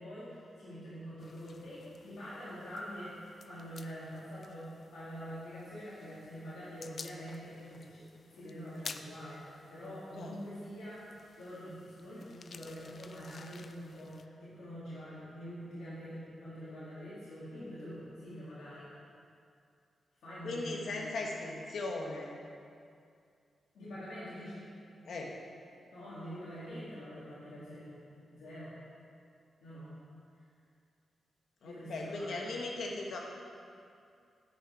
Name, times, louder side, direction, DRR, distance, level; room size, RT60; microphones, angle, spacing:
voice 1, 0.0-8.0 8.3-11.0 11.4-18.9 20.2-21.2 23.7-24.7 25.9-28.0 28.3-28.8 29.6-29.9 31.6-32.3, equal, 90° left, -11 dB, 2.2 m, -45 dB
sound 1, 1.2-14.3, left 5 dB, 55° left, 0.4 m, -53 dB
voice 2, 20.4-22.4 25.1-25.4 31.6-33.2, left 2 dB, 70° left, -1 dB, 1.4 m, -38 dB
9.4 x 6.4 x 4.7 m, 2.4 s
cardioid pair, 80°, 0 cm